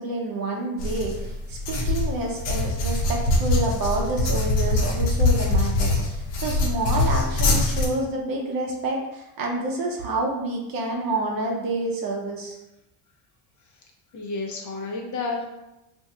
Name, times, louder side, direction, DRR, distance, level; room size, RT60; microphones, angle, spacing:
voice 1, 0.0-12.6, right 2 dB, 50° right, -1 dB, 0.8 m, -28 dB
sound 1, 0.8-7.9, left 2 dB, 65° left, 1.0 m, -23 dB
voice 2, 14.1-15.5, left 3 dB, 40° left, 1 dB, 0.8 m, -30 dB
2.6 x 2.3 x 4.1 m, 0.93 s
cardioid pair, 100°, 46 cm